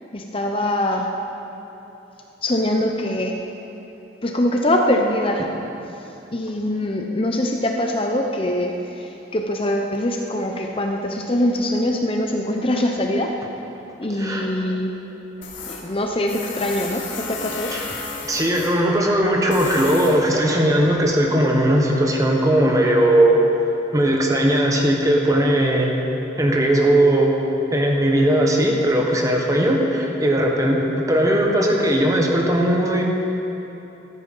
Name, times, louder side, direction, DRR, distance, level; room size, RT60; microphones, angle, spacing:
voice 1, 0.1-1.1 2.4-3.4 4.2-5.5 6.3-13.3 14.0-15.0 15.6-18.0, left 1 dB, 30° left, 2 dB, 0.8 m, -23 dB
voice 2, 14.1-14.5 17.7-17.9 18.3-23.4 23.9-27.3 27.7-33.0, right 1 dB, 15° right, 0 dB, 1.4 m, -18 dB
Tools, 15.4-21.6, left 4 dB, 75° left, 2.3 m, -35 dB
15.0 x 13.0 x 5.5 m, 3.0 s
head